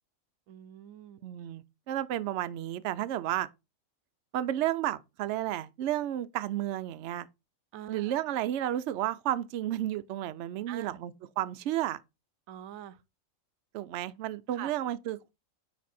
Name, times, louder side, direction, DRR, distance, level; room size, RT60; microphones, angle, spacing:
voice 1, 0.5-1.2 7.7-8.1 10.7-11.0 12.5-13.0 14.5-14.7, right 11 dB, 90° right, 1.0 m, -44 dB
voice 2, 1.2-3.5 4.3-7.3 7.9-12.0 13.7-15.3, right 12 dB, 65° right, 0.8 m, -32 dB
9.6 x 3.3 x 4.2 m
omnidirectional pair, 1.4 m